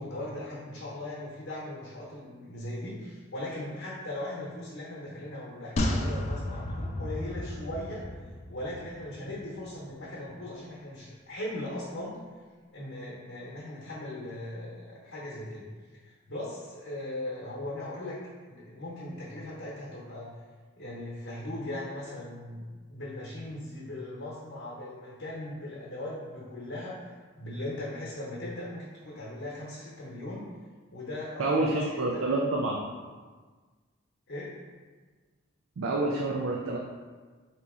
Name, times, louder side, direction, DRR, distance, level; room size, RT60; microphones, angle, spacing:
voice 1, 0.0-8.1 8.5-12.1 12.7-15.7 16.0-18.2 18.5-20.3 20.8-22.6 22.9-30.5 30.9-32.2 34.3-34.5, left 1 dB, 65° left, -5 dB, 0.8 m, -39 dB
sound 1, 5.8-9.2 9.5-9.6, left 1 dB, 30° left, 0.3 m, -32 dB
voice 2, 31.4-32.8 35.8-36.8, right 2 dB, 75° right, -1 dB, 0.4 m, -28 dB
3.9 x 2.9 x 3.6 m, 1.4 s
head